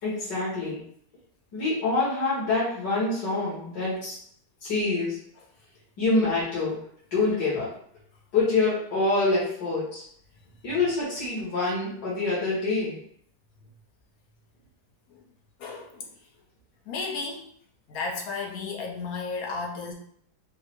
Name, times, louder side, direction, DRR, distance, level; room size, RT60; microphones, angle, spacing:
voice 1, 0.0-0.8 1.5-4.2 4.6-5.2 6.0-6.8 7.1-7.7 8.3-10.0 10.6-13.0, left 3 dB, 90° left, -9 dB, 2.3 m, -26 dB
voice 2, 15.6-16.1 16.9-17.5 17.9-19.9, left 4 dB, 65° left, 0 dB, 1.2 m, -33 dB
4.7 x 2.1 x 4.4 m, 0.64 s
omnidirectional pair, 1.8 m